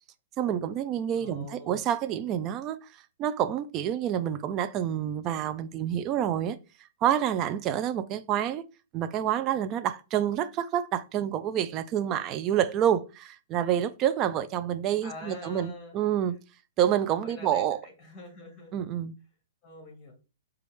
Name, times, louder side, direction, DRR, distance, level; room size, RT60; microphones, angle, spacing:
voice 1, 0.4-2.8 3.2-6.6 7.0-8.6 8.9-16.4 16.8-17.8 18.7-19.1, right 10 dB, 30° right, 0.3 m, -28 dB
voice 2, 1.1-1.8 15.0-15.9 17.1-18.7 19.6-20.1, left 3 dB, 20° left, 2.1 m, -44 dB
4.9 x 2.3 x 3.0 m
figure-of-eight pair, 115°, 0 cm